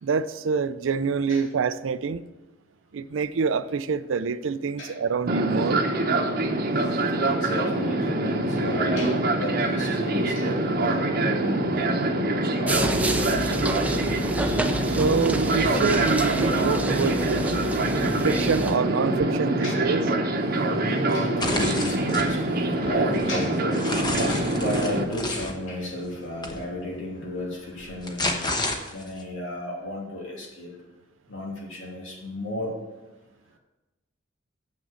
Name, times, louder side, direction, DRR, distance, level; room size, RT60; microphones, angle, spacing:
voice 1, 0.0-2.2 2.9-5.8 14.9-17.4 18.0-20.0, right 5 dB, 75° right, 0.4 m, -26 dB
Fixed-wing aircraft airplane, 5.3-25.0, right 2 dB, 50° right, 0.9 m, -25 dB
voice 2, 7.2-13.2 13.5-14.0 14.4-14.6 18.5-18.7 19.3-28.5 28.9-30.7 31.3-32.7, left 1 dB, 70° left, 2.9 m, -33 dB
sound 1, 12.7-18.8, right 1 dB, 10° right, 0.6 m, -29 dB
sound 2, 21.4-22.3 22.8-25.5 26.4-26.6 27.8-29.2, left 2 dB, 20° left, 1.0 m, -30 dB
7.5 x 6.3 x 7.0 m
head